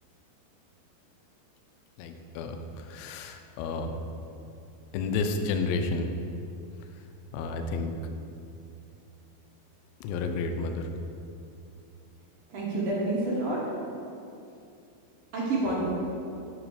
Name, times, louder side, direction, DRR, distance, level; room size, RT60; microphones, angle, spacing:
voice 1, 2.0-4.0 4.9-6.1 7.3-7.9 10.0-10.9, left 4 dB, 80° left, 6 dB, 2.2 m, -31 dB
voice 2, 12.5-13.7 15.3-15.9, right 2 dB, 70° right, -5 dB, 2.1 m, -28 dB
8.0 x 3.0 x 5.1 m, 2.6 s
omnidirectional pair, 4.4 m